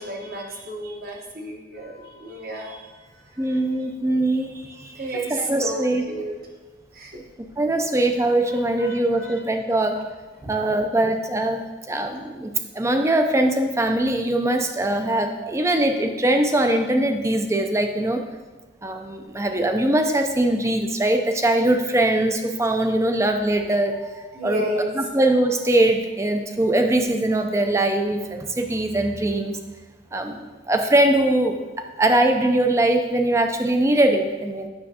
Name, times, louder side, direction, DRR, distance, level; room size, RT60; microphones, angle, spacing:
voice 1, 0.0-2.9 3.4-3.6 4.2-6.3 6.9-7.2 8.5-9.3 10.4-10.5 15.4-15.5 24.3-24.9, right 1 dB, 50° right, 0 dB, 1.1 m, -32 dB
voice 2, 3.4-4.6 5.3-6.1 7.6-10.0 10.5-18.2 18.8-24.7 24.9-29.6 30.1-34.7, right 1 dB, 15° right, 5 dB, 0.4 m, -22 dB
8.7 x 6.3 x 2.8 m, 1.3 s
head